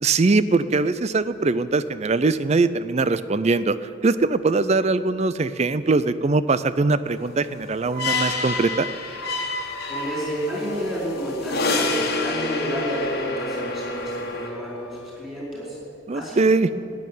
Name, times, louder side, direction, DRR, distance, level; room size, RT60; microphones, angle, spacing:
voice 1, 0.0-8.9 16.1-16.7, right 3 dB, 35° right, 14 dB, 0.5 m, -21 dB
sound 1, 7.3-14.5, left 2 dB, 50° left, 1.5 m, -28 dB
sound 2, 9.2-15.3, left 3 dB, 75° left, 1.4 m, -44 dB
voice 2, 9.9-15.8 16.1-16.5, equal, 5° right, -6 dB, 4.7 m, -30 dB
14.0 x 9.3 x 9.3 m, 2.6 s
head